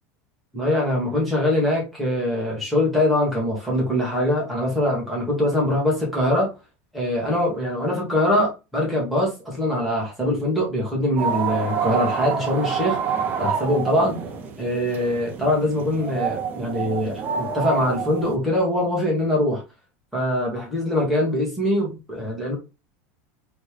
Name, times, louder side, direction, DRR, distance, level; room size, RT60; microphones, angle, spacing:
voice 1, 0.5-6.5 6.9-13.1 13.4-14.2 14.6-19.6 20.1-22.6, left 1 dB, ahead, -4 dB, 1.6 m, -23 dB
sound 1, 11.2-18.4, right 6 dB, 25° right, 0.6 m, -28 dB
4.2 x 3.2 x 3.4 m, 0.28 s
supercardioid pair, 175°, 8 cm